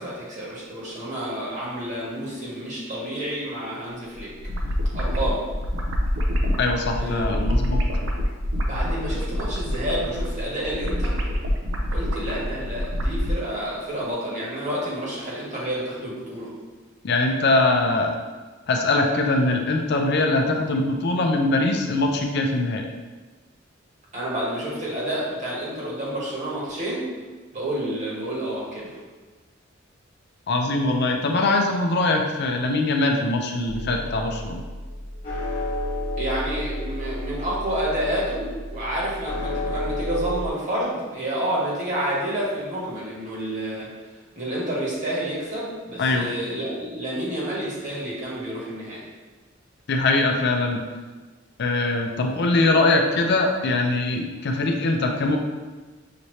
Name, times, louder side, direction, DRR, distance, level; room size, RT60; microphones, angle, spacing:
voice 1, 0.0-4.3 4.9-5.5 7.0-7.4 8.6-11.2 11.9-16.5 24.1-27.0 27.5-29.0 36.2-43.9 44.3-49.0, right 1 dB, 40° right, -6 dB, 1.3 m, -29 dB
sound 1, 4.1-13.4, equal, 75° right, 0.6 m, -26 dB
voice 2, 6.6-7.9 17.0-18.1 18.7-22.9 30.5-34.6 46.0-46.3 49.9-50.8 51.6-55.4, left 2 dB, 55° left, 3 dB, 0.5 m, -22 dB
sound 2, 33.7-40.5, left 1 dB, 40° left, 1.1 m, -31 dB
5.8 x 2.7 x 3.2 m, 1.3 s
head